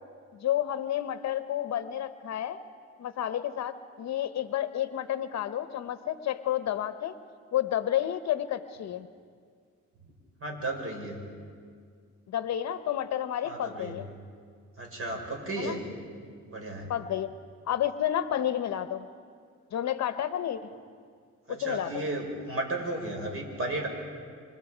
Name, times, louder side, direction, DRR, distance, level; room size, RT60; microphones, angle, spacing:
voice 1, 0.3-2.6 3.0-7.1 7.5-9.1 12.3-14.1 15.6-15.8 16.9-17.3 17.7-19.0 19.7-20.6 21.5-21.9, left 11 dB, 60° left, 11 dB, 0.9 m, -30 dB
voice 2, 10.4-11.2 13.5-14.0 14.8-15.8 16.5-16.9 21.5-23.9, right 2 dB, 45° right, 2 dB, 5.4 m, -34 dB
26.5 x 26.5 x 5.0 m, 2.1 s
cardioid pair, 90°, 30 cm